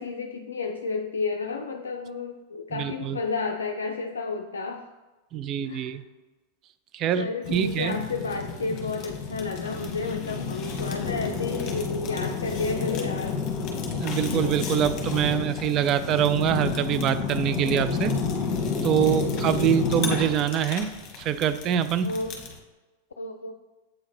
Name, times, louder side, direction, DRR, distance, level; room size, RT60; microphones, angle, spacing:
voice 1, 0.0-4.9 5.6-5.9 7.1-13.4 19.6-20.0 22.0-22.4 23.2-23.5, left 4 dB, 70° left, 3 dB, 0.4 m, -31 dB
voice 2, 2.7-3.2 5.3-6.0 6.9-8.0 14.0-18.2 18.8-20.9 21.2-22.1, right 9 dB, 35° right, 12 dB, 0.4 m, -24 dB
Fire, 7.4-22.6, left 5 dB, 35° left, 1.2 m, -30 dB
7.9 x 3.7 x 4.3 m, 1.2 s
figure-of-eight pair, 90°, 0 cm